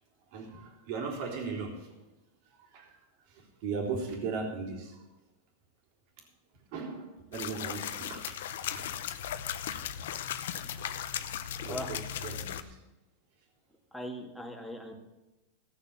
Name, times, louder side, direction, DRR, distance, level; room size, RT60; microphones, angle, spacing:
voice 1, 0.3-1.9 2.6-3.0 3.3-5.0 6.7-8.8 11.6-12.8, right 4 dB, 60° right, 1 dB, 3.5 m, -38 dB
sound 1, 7.3-12.6, left 10 dB, 80° left, 0.8 m, -37 dB
voice 2, 10.6-11.1 11.7-11.9 13.9-14.9, equal, ahead, 1 dB, 2.0 m, -41 dB
16.0 x 6.8 x 7.2 m, 1.0 s
supercardioid pair, 125°, 0 cm